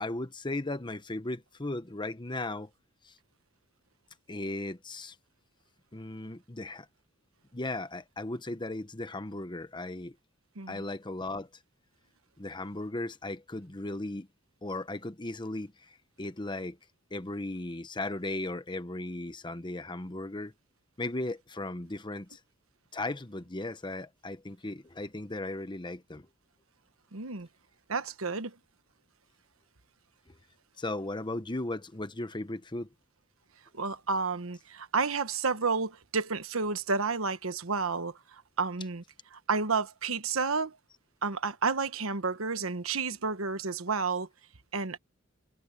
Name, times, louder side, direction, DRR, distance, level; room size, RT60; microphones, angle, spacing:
voice 1, 0.0-2.7 3.0-3.1 4.3-5.1 5.9-6.9 7.5-10.1 10.7-11.5 12.4-14.3 14.6-15.7 16.2-16.8 17.1-20.5 21.0-22.4 22.9-26.3 30.8-32.9, left 2 dB, 20° left, 1.0 m, -36 dB
voice 2, 27.1-27.5 27.9-28.5 33.7-39.0 39.3-40.8 41.2-44.3 44.7-45.0, right 4 dB, 85° right, 1.2 m, -31 dB
head